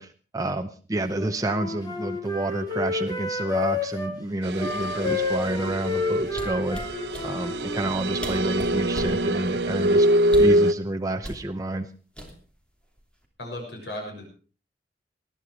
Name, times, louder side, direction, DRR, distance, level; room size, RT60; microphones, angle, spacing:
voice 1, 0.0-6.8 7.2-10.1 10.4-11.9, right 1 dB, 20° right, 6 dB, 0.8 m, -29 dB
Wind instrument woodwind instrument, 1.2-4.1 4.6-8.0, left 3 dB, 25° left, 3.0 m, -30 dB
sound 1, 4.4-10.7, right 1 dB, 70° right, 0.9 m, -24 dB
sound 2, 6.3-7.3 7.9-8.0 8.2-9.2 10.2-10.6 11.2-11.4 12.2-12.6 13.0-13.2, equal, 5° left, 3.0 m, -36 dB
voice 2, 13.4-14.3, left 1 dB, 70° left, 1 dB, 6.7 m, -35 dB
19.5 x 11.5 x 4.7 m, 0.38 s
head